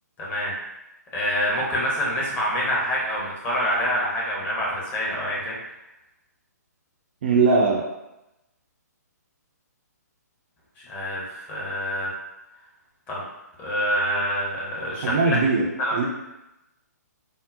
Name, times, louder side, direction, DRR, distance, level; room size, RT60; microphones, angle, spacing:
voice 1, 0.2-0.5 1.1-5.6 10.8-12.1 13.1-13.2 13.6-15.4 15.8-15.9, equal, 15° left, -6 dB, 0.7 m, -26 dB
voice 2, 7.2-7.8 15.0-15.7 15.9-16.1, right 4 dB, 35° right, -2 dB, 0.4 m, -20 dB
3.6 x 2.0 x 2.5 m, 0.92 s
figure-of-eight pair, 130°, 9 cm